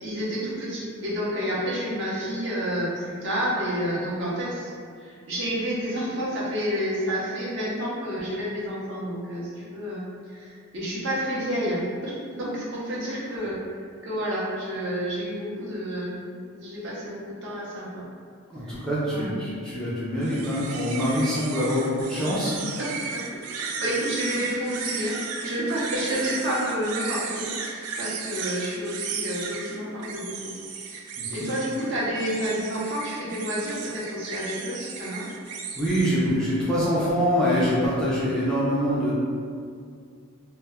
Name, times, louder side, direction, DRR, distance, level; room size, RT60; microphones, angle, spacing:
voice 1, 0.0-13.6 14.0-18.1 18.6-18.8 19.1-19.3 22.8-30.5 30.8-35.3, equal, 55° right, -6 dB, 0.6 m, -30 dB
voice 2, 18.5-22.5 31.2-31.3 35.8-39.1, equal, 5° left, -10 dB, 0.4 m, -24 dB
sound 1, 20.2-36.1, right 5 dB, 90° right, 0.3 m, -35 dB
2.1 x 2.1 x 3.4 m, 2.2 s
head